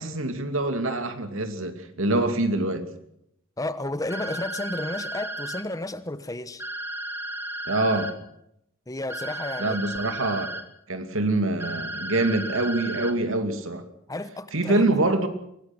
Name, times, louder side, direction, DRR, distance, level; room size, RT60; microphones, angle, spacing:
voice 1, 0.0-2.8 7.7-8.1 9.6-10.5 10.9-13.8 14.5-15.3, right 2 dB, 80° right, 8 dB, 2.6 m, -25 dB
voice 2, 3.6-6.6 8.9-9.8 14.1-14.8, left 2 dB, 15° left, 13 dB, 1.0 m, -32 dB
sound 1, 4.1-5.6 6.6-8.1 9.1-10.6 11.6-13.1, right 1 dB, 10° right, 1.7 m, -34 dB
23.5 x 19.0 x 6.2 m, 0.76 s
head